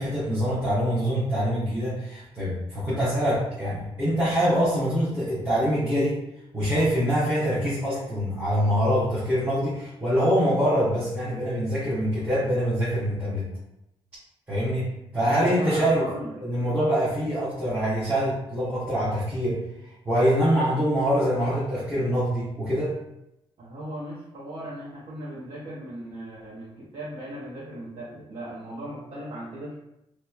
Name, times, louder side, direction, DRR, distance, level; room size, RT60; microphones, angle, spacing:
voice 1, 0.0-6.2 6.5-13.5 14.5-16.0 16.4-23.0, equal, 15° right, -12 dB, 0.7 m, -24 dB
voice 2, 15.2-16.4 23.6-29.8, right 1 dB, 60° right, -7 dB, 0.6 m, -37 dB
2.8 x 2.0 x 2.2 m, 0.85 s
wide cardioid pair, 175°, 11 cm